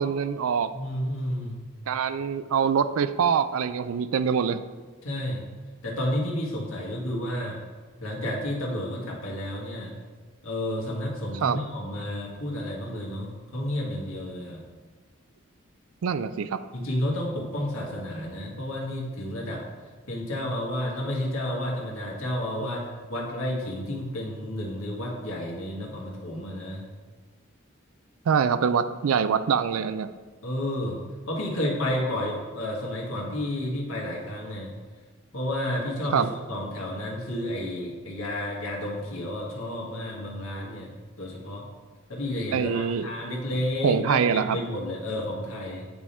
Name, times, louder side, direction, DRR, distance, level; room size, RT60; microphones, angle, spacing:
voice 1, 0.0-0.7 1.9-4.6 11.4-11.6 16.0-16.6 22.6-22.7 28.3-30.1 36.1-36.3 42.5-43.1 43.8-44.6, right 7 dB, 85° right, 12 dB, 0.4 m, -24 dB
voice 2, 0.7-1.6 5.0-5.4 5.8-7.6 8.0-9.9 10.4-14.6 16.7-19.6 20.1-26.8 30.4-31.0 31.3-34.7 35.3-40.9 41.2-41.6 42.1-45.9, left 1 dB, 85° left, -3 dB, 1.6 m, -31 dB
8.6 x 3.5 x 4.3 m, 1.4 s
head